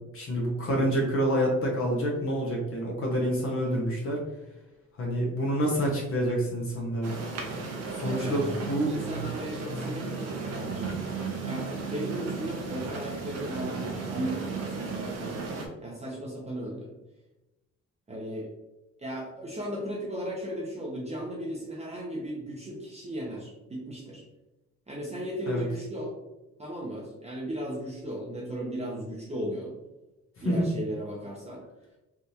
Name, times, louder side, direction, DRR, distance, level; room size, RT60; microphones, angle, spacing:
voice 1, 0.1-4.2 5.0-7.1 7.9-9.0 25.5-25.6 30.4-30.7, equal, 45° left, -1 dB, 0.9 m, -27 dB
sound 1, 7.0-15.7, right 4 dB, 55° right, 0.8 m, -34 dB
voice 2, 8.0-8.5 8.9-10.9 11.4-15.5 15.8-16.9 18.1-18.5 19.0-24.2 24.9-26.2 26.6-29.7 30.4-31.6, right 1 dB, 20° right, -4 dB, 0.7 m, -36 dB
3.5 x 2.5 x 2.8 m, 1.0 s
cardioid pair, 90°, 30 cm